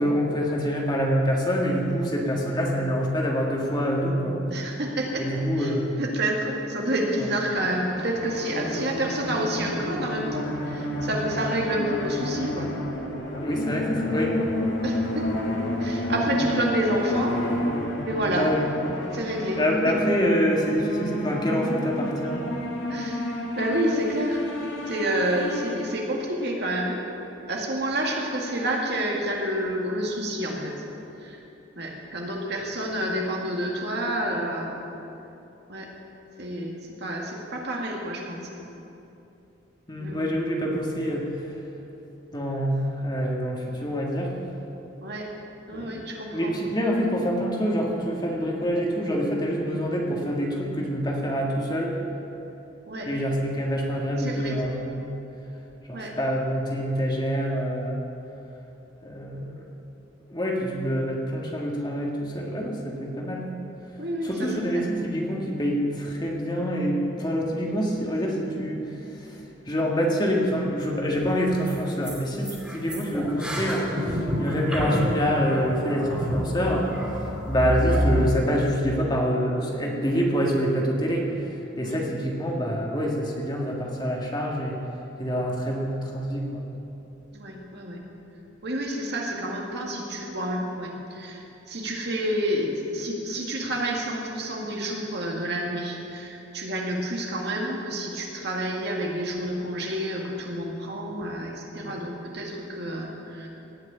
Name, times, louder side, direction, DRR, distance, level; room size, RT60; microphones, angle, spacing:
voice 1, 0.0-4.4 5.2-5.9 8.5-8.6 13.2-14.7 16.3-16.4 18.3-18.7 19.6-22.4 39.9-41.3 42.3-44.4 45.7-45.9 46.3-51.9 53.1-55.1 55.9-58.0 59.0-59.6 60.3-63.5 64.2-77.0 77.5-81.3 81.8-84.8 85.2-86.6, equal, 20° left, -1 dB, 1.7 m, -26 dB
voice 2, 4.5-5.2 5.5-12.7 14.8-17.4 18.1-18.5 19.1-19.6 22.9-24.4 24.9-27.0 27.5-30.7 31.2-31.4 31.8-34.8 35.7-35.9 36.4-38.6 40.0-40.3 45.0-45.3 45.7-46.5 52.9-53.1 54.2-54.5 55.9-56.1 64.0-64.8 81.8-82.0 87.3-88.0 88.6-103.5, right 1 dB, 60° right, -1 dB, 2.1 m, -29 dB
sound 1, 7.6-26.3, left 1 dB, 65° left, 2.0 m, -30 dB
sound 2, 71.3-71.4 71.6-71.7 72.0-72.2 72.4-78.3, equal, 5° right, 2.9 m, -28 dB
18.0 x 6.4 x 8.7 m, 2.9 s
head